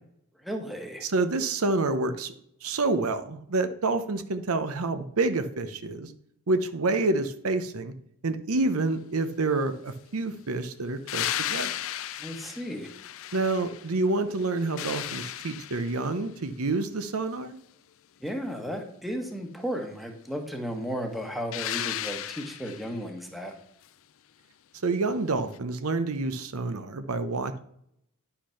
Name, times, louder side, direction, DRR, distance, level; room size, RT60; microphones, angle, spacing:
voice 1, 0.4-1.1 12.2-12.9 18.2-23.5, equal, ahead, 3 dB, 1.2 m, -34 dB
voice 2, 1.0-2.3 2.6-6.1 6.5-7.9 8.2-11.7 13.3-17.6 24.8-27.6, right 3 dB, 70° right, 10 dB, 0.8 m, -28 dB
sound 1, 11.1-14.0 14.4-16.1 21.5-23.0 25.5-25.6, left 12 dB, 65° left, 0.5 m, -34 dB
10.0 x 5.8 x 5.7 m, 0.73 s
head